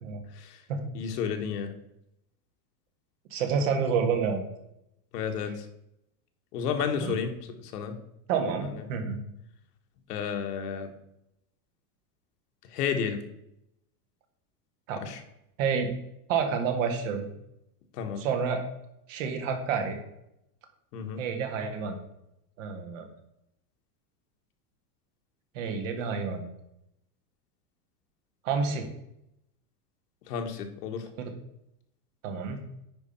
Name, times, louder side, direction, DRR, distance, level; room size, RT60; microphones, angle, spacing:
voice 1, 0.9-1.7 5.1-5.7 6.5-7.3 7.6-7.9 8.6-8.8 10.1-10.9 12.7-13.2 15.0-15.2 17.9-18.2 20.9-21.2 30.3-31.1, left 7 dB, 85° left, 5 dB, 1.6 m, -31 dB
voice 2, 3.3-4.5 7.0-7.2 8.3-9.2 14.9-15.1 15.6-15.9 16.3-17.3 18.2-18.6 19.1-20.0 21.2-22.0 22.6-23.1 25.5-26.4 28.4-28.9 31.2-31.3 32.2-32.6, right 6 dB, 55° right, 5 dB, 1.6 m, -29 dB
9.7 x 5.2 x 4.4 m, 0.82 s
supercardioid pair, 175°, 46 cm